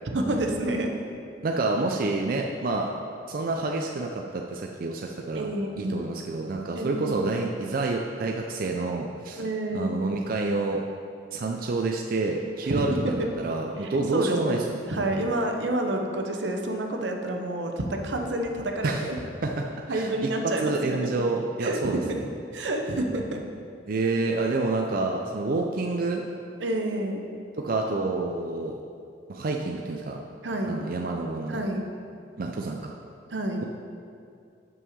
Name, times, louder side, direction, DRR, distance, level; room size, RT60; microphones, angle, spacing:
voice 1, 0.1-0.9 5.3-6.1 6.7-7.3 9.4-10.0 12.6-13.3 13.8-14.6 14.9-19.2 19.9-21.1 21.6-22.2 22.5-23.4 26.6-27.3 30.4-30.8 31.5-31.8 33.3-33.6, right 1 dB, 85° right, 3 dB, 0.8 m, -29 dB
voice 2, 1.4-2.9 3.3-5.5 5.8-9.4 9.7-10.8 11.3-14.8 18.8-19.1 19.4-19.5 19.9-20.3 20.6-22.2 23.9-26.2 27.6-28.8 29.3-30.2 30.6-31.6 32.4-32.8, right 3 dB, 50° right, 1 dB, 0.4 m, -28 dB
5.5 x 5.5 x 6.5 m, 2.4 s
head